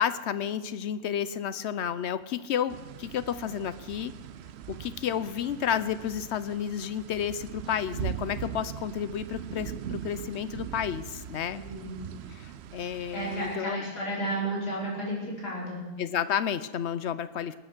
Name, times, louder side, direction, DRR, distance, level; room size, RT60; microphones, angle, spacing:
voice 1, 0.0-4.1 4.7-11.6 12.3-13.8 16.0-17.5, left 9 dB, 65° left, 14 dB, 0.7 m, -31 dB
sound 1, 2.7-13.6, right 9 dB, 65° right, 0.6 m, -41 dB
voice 2, 11.5-12.0 13.1-15.9, right 1 dB, 85° left, -5 dB, 5.5 m, -32 dB
20.5 x 9.0 x 6.1 m, 1.1 s
omnidirectional pair, 1.7 m